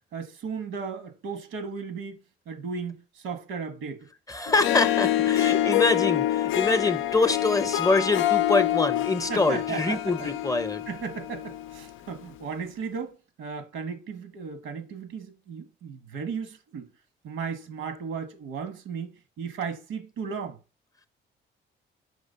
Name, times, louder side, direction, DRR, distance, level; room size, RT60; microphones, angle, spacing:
voice 1, 0.1-2.2 2.5-4.1 9.3-10.3 10.9-16.9 17.2-20.6, right 5 dB, 90° right, 1.3 m, -35 dB
voice 2, 4.3-10.8, left 3 dB, 15° left, 0.6 m, -25 dB
Harp, 4.5-11.9, left 13 dB, 90° left, 0.5 m, -26 dB
5.9 x 3.2 x 5.5 m
cardioid pair, 90°, 20 cm